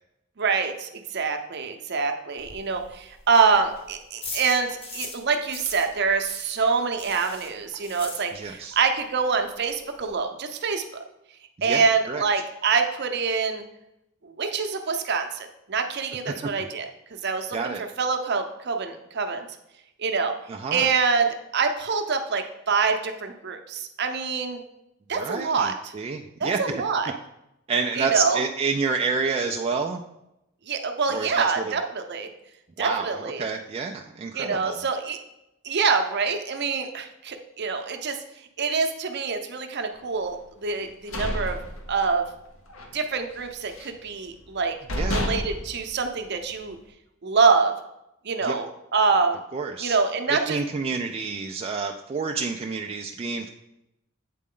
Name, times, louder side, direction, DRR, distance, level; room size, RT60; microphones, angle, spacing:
voice 1, 0.4-10.8 11.6-13.6 14.2-16.9 17.2-19.5 20.0-20.3 20.7-24.6 25.1-25.9 26.4-27.1 27.9-28.4 30.7-32.3 32.8-33.4 34.3-35.2 35.6-38.2 38.6-41.6 41.9-42.3 42.9-44.7 45.0-46.8 47.2-47.7 48.2-48.7 48.9-49.4 49.8-50.6, right 5 dB, 55° right, 6 dB, 0.7 m, -25 dB
sound 1, 2.4-5.3 5.5-8.7 9.0-9.1 9.4-9.5 9.7-10.2, left 3 dB, 30° left, 0.9 m, -40 dB
voice 2, 8.3-8.8 11.6-12.2 16.2-16.5 17.5-17.8 20.5-20.9 25.2-26.6 27.7-30.0 31.1-31.7 32.8-34.8 44.9-45.2 48.4-48.5 49.5-50.0 50.3-53.5, right 4 dB, 30° right, 3 dB, 0.3 m, -29 dB
sound 2, 40.8-42.4 42.7-43.0 43.3-44.1 44.5-44.6 44.9-46.7, equal, 75° left, 0.8 m, -31 dB
8.4 x 4.2 x 3.7 m, 0.87 s
head